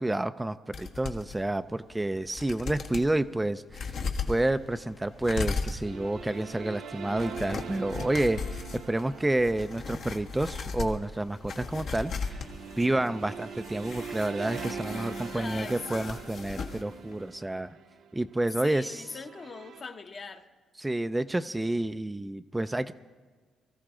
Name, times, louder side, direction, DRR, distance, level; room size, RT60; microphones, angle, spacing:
voice 1, 0.0-4.0 4.3-12.4 12.8-17.8 18.1-19.2 20.8-22.9, right 1 dB, 10° right, 10 dB, 0.4 m, -29 dB
sound 1, 0.7-1.4 1.9-2.0 2.3-3.1 3.7-16.8 17.1-17.2, left 4 dB, 65° left, 1.5 m, -38 dB
sound 2, 5.8-19.8, right 6 dB, 70° right, 0.9 m, -43 dB
voice 2, 15.3-16.1 18.6-20.5, left 4 dB, 40° left, 6 dB, 1.0 m, -41 dB
23.5 x 14.5 x 3.8 m, 1.5 s
cardioid pair, 90°, 0 cm